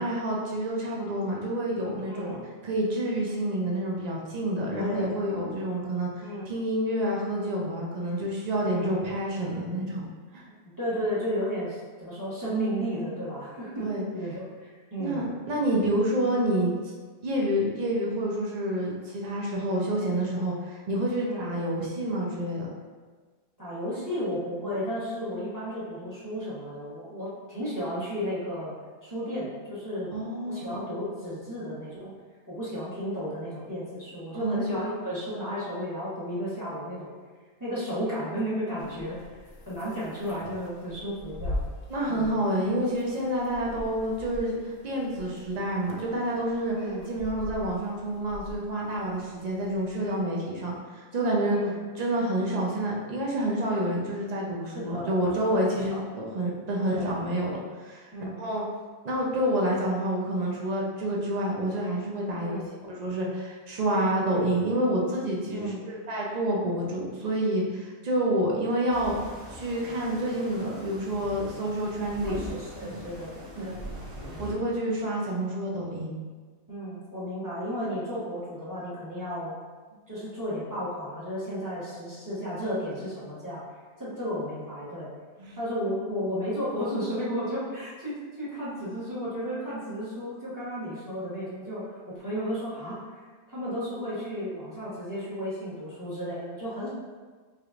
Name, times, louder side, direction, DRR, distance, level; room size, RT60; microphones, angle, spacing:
voice 1, 0.0-2.4 2.6-10.0 10.3-10.4 13.8-14.0 15.0-16.9 17.2-22.7 30.1-30.7 34.4-34.7 41.9-46.7 47.1-51.6 52.0-58.1 58.4-58.6 59.0-62.6 62.9-69.2 69.5-72.4 72.8-72.9 73.6-73.7 74.4-76.1 85.4-85.6, right 1 dB, 70° right, -3 dB, 0.3 m, -28 dB
voice 2, 2.0-2.4 4.7-5.2 6.2-6.4 8.7-9.1 10.5-15.2 21.2-21.5 23.6-28.7 29.0-30.1 30.4-32.1 32.5-37.1 37.6-39.2 39.7-41.6 42.1-42.3 46.7-47.1 50.0-50.1 51.5-51.8 54.6-55.1 55.4-56.0 56.8-57.1 58.1-58.4 62.4-62.6 65.5-65.8 72.2-73.9 74.1-74.4 76.7-79.5 80.1-83.6 84.0-85.1 85.6-91.8 92.1-96.9, equal, 15° right, -9 dB, 1.1 m, -33 dB
sound 1, 38.8-50.2, left 1 dB, 80° left, 0.4 m, -42 dB
sound 2, 68.9-74.5, left 1 dB, 35° right, 1.2 m, -42 dB
4.9 x 2.9 x 2.4 m, 1.4 s
omnidirectional pair, 1.5 m